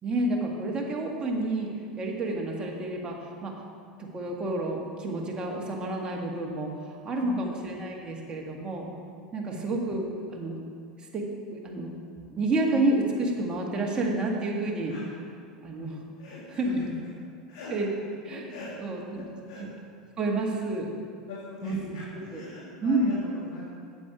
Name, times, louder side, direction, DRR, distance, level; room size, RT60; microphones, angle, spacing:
voice 1, 0.0-3.5 4.0-8.9 9.3-10.6 11.0-11.9 12.3-15.0 15.6-16.0 16.5-16.9 17.7-17.9 18.2-18.5 18.8-19.7 20.2-20.9 21.6-21.9 22.3-22.4 22.8-23.2, right 2 dB, 25° right, -1 dB, 1.8 m, -30 dB
voice 2, 7.2-7.5 9.5-9.7 14.9-15.0 16.2-16.8 17.5-17.7 18.5-18.7 19.2-19.6 21.3-23.6, left 3 dB, 70° left, -6 dB, 1.9 m, -42 dB
8.3 x 8.2 x 5.1 m, 2.2 s
hypercardioid pair, 85°, 4 cm